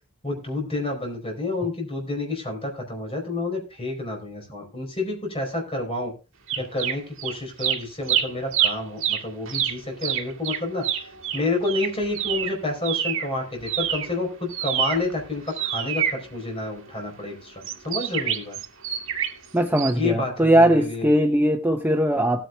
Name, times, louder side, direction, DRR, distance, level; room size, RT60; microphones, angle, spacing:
voice 1, 0.2-6.1 6.6-10.9 11.3-18.6 19.9-21.1, left 2 dB, 25° left, 1 dB, 4.5 m, -29 dB
sound 1, 6.5-7.3 7.6-13.3 13.6-16.9 17.6-19.5 19.8-19.9, right 10 dB, 65° right, 1.9 m, -27 dB
voice 2, 19.5-22.5, right 1 dB, 10° right, 4 dB, 0.7 m, -20 dB
18.0 x 9.3 x 2.4 m, 0.30 s
head